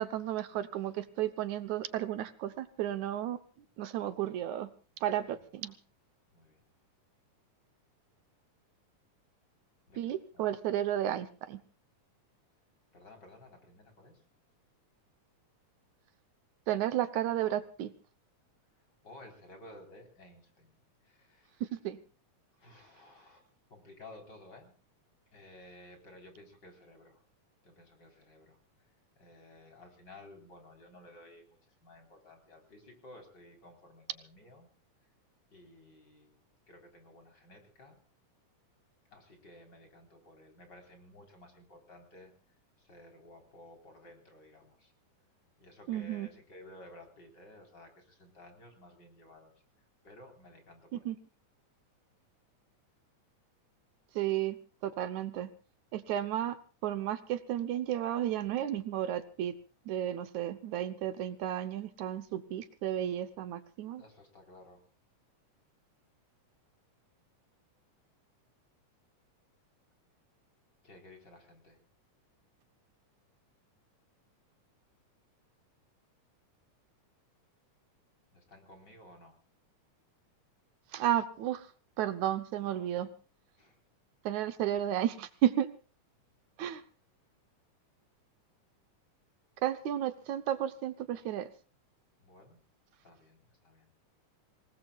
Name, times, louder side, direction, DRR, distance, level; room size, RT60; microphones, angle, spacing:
voice 1, 0.0-3.4 3.8-4.7 5.0-5.7 10.0-11.6 16.7-17.9 21.6-22.0 45.9-46.3 50.9-51.2 54.2-54.6 54.8-55.5 55.9-56.6 56.8-59.6 59.9-64.0 80.9-81.7 82.0-83.1 84.2-85.7 86.6-86.8 89.6-91.5, right 11 dB, 70° right, 11 dB, 2.2 m, -33 dB
voice 2, 6.3-6.6 9.9-10.4 12.9-14.2 19.0-21.6 22.5-24.7 25.3-27.2 27.6-28.6 29.2-34.7 35.5-38.0 39.1-42.3 42.8-44.9 45.6-49.5 50.0-51.0 64.0-64.8 70.8-71.8 78.3-79.3 83.6-83.8 92.2-92.6 93.0-93.9, left 1 dB, 30° left, 3 dB, 4.7 m, -55 dB
27.0 x 19.0 x 2.4 m, 0.36 s
omnidirectional pair, 3.7 m